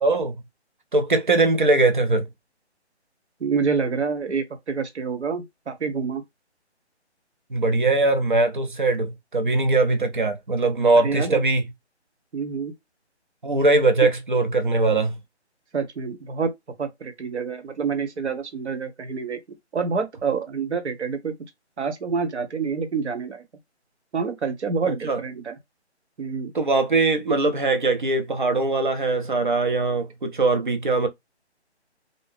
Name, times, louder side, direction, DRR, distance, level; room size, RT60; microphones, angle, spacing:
voice 1, 0.0-0.3 0.9-2.3 7.5-11.6 13.4-15.2 24.9-25.2 26.5-31.1, right 3 dB, 45° right, 0.5 m, -21 dB
voice 2, 3.4-6.2 11.0-11.4 12.3-12.7 14.0-14.1 15.7-16.5 16.8-19.4 19.7-21.3 21.8-23.4 24.1-25.6 26.2-26.5, right 5 dB, 75° right, 1.0 m, -27 dB
2.7 x 2.0 x 3.4 m
hypercardioid pair, 175°, 34 cm